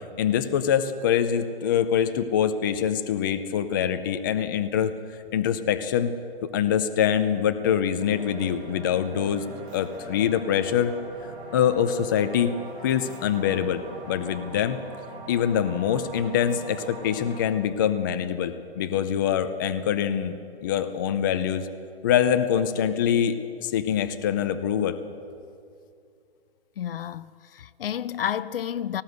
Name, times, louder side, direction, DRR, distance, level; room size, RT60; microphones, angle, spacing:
voice 1, 0.2-5.0 5.3-6.1 6.4-9.4 9.7-10.9 11.5-12.5 12.8-13.8 14.1-14.8 15.3-21.7 22.0-25.0, left 9 dB, 20° left, 0.5 m, -24 dB
sound 1, 8.0-17.4, right 2 dB, 30° right, 4.5 m, -42 dB
voice 2, 26.8-29.0, left 9 dB, 60° left, 0.7 m, -31 dB
18.5 x 18.0 x 8.0 m
hypercardioid pair, 160°, 32 cm